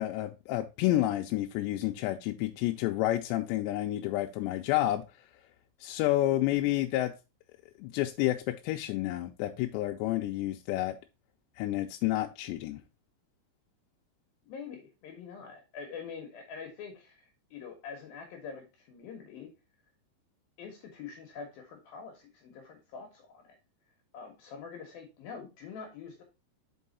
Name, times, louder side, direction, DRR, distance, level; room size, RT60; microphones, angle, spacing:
voice 1, 0.0-5.0 5.8-7.1 7.8-10.9 11.6-12.8, left 15 dB, 85° left, 3 dB, 2.6 m, -30 dB
voice 2, 14.4-19.5 20.6-23.6 24.1-26.2, left 6 dB, 70° left, 3 dB, 2.5 m, -45 dB
5.5 x 5.4 x 4.0 m, 0.28 s
omnidirectional pair, 5.1 m